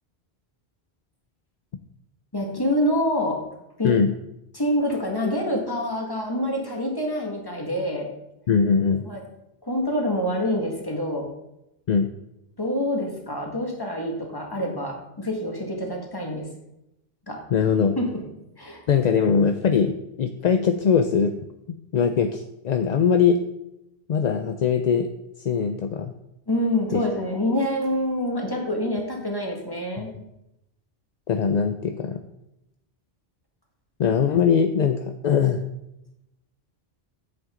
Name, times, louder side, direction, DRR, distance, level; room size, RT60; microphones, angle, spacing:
voice 1, 2.3-3.4 3.8-3.9 4.5-8.1 9.1-9.2 9.6-11.3 12.6-16.5 17.3-17.4 18.0-18.2 18.6-18.8 26.5-30.1, left 1 dB, 20° left, 0 dB, 1.8 m, -26 dB
voice 2, 8.5-9.0 11.9-12.1 17.5-18.0 18.9-21.3 21.9-23.4 24.1-25.1 25.4-26.1 26.9-27.0 30.0-30.1 31.3-32.2 34.0-35.6, left 6 dB, 50° left, 7 dB, 0.5 m, -21 dB
9.4 x 7.9 x 3.8 m, 0.85 s
omnidirectional pair, 1.1 m